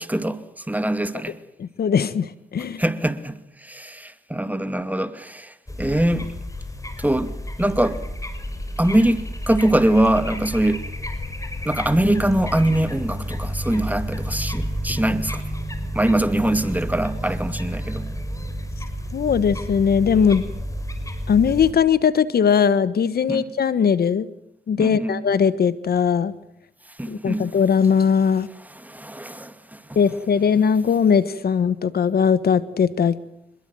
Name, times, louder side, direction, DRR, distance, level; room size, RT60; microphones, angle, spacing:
voice 1, 0.0-1.4 2.8-6.3 7.0-8.0 8.8-10.9 11.6-15.5 15.9-18.5 23.3-23.5 24.8-25.2 27.0-27.5 28.6-30.0, right 1 dB, 10° right, 2.5 m, -23 dB
voice 2, 1.6-2.8 19.1-20.4 21.3-24.3 24.7-26.3 27.1-28.5 29.9-33.2, left 7 dB, 65° left, 1.4 m, -19 dB
sound 1, 5.7-21.7, equal, 20° left, 5.8 m, -31 dB
26.5 x 22.0 x 7.8 m
cardioid pair, 70°, 17 cm